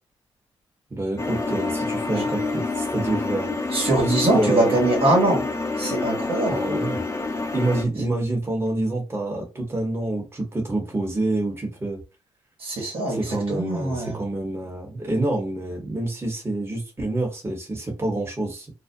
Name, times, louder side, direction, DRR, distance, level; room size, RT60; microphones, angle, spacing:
voice 1, 0.9-3.5 4.0-4.8 6.4-7.0 7.5-12.0 13.1-18.7, right 2 dB, 25° right, 1.0 m, -27 dB
sound 1, 1.2-7.8, left 3 dB, 30° left, 0.7 m, -27 dB
voice 2, 3.7-5.4 5.8-6.6 12.6-14.2, right 2 dB, 65° right, 1.1 m, -22 dB
2.4 x 2.1 x 2.6 m
cardioid pair, 60°, 10 cm